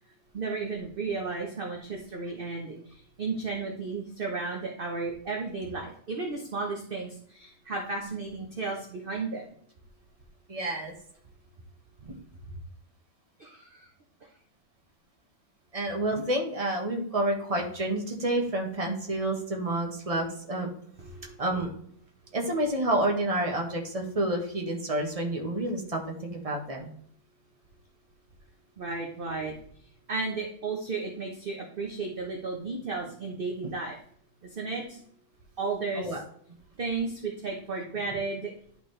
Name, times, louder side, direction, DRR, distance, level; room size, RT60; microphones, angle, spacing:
voice 1, 0.3-9.4 13.4-13.9 21.0-21.3 28.8-29.5 30.1-34.0 34.4-35.0 35.6-36.1 36.8-38.5, right 4 dB, 35° right, 0 dB, 1.0 m, -34 dB
voice 2, 10.5-10.9 12.0-12.2 15.7-20.7 21.4-21.7 22.3-26.9 35.9-36.2, right 1 dB, 20° right, 1 dB, 1.3 m, -29 dB
11.5 x 4.2 x 3.3 m, 0.62 s
omnidirectional pair, 2.0 m